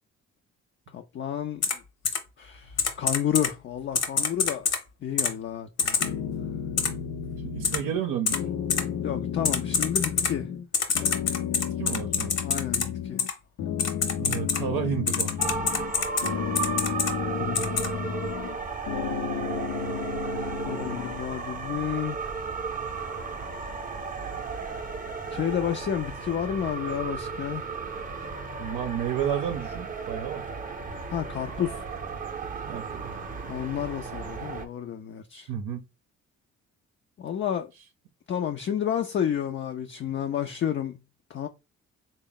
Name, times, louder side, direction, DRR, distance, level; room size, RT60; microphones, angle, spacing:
voice 1, 0.9-1.8 2.4-4.7 5.0-6.1 9.0-10.5 12.4-13.2 17.4-18.1 20.7-22.2 25.3-27.7 31.1-31.8 33.5-35.5 37.2-37.7 38.3-41.0 41.3-41.5, left 9 dB, 40° left, 0.4 m, -31 dB
Typing, 1.6-1.7 2.0-2.2 2.8-3.5 3.9-4.8 5.2-5.3 5.8-6.1 6.8-6.9 7.6-7.8 8.3-8.4 8.7-8.8 9.4-10.3 10.7-12.8 13.2-13.3 13.8-14.6 15.1-16.3 16.6-17.1 17.5-17.9, left 6 dB, 60° left, 0.9 m, -25 dB
sound 1, 6.0-8.0 8.3-10.7 10.9-13.3 13.6-15.9 16.2-18.6 18.9-21.2, left 8 dB, 80° left, 0.6 m, -32 dB
voice 2, 7.4-8.4 11.8-12.3 14.2-15.4 28.6-30.5 32.6-33.1 35.5-35.8, right 9 dB, 80° right, 0.6 m, -31 dB
sound 2, 15.4-34.7, right 4 dB, 30° right, 0.6 m, -34 dB
3.5 x 2.1 x 3.8 m
cardioid pair, 90°, 30 cm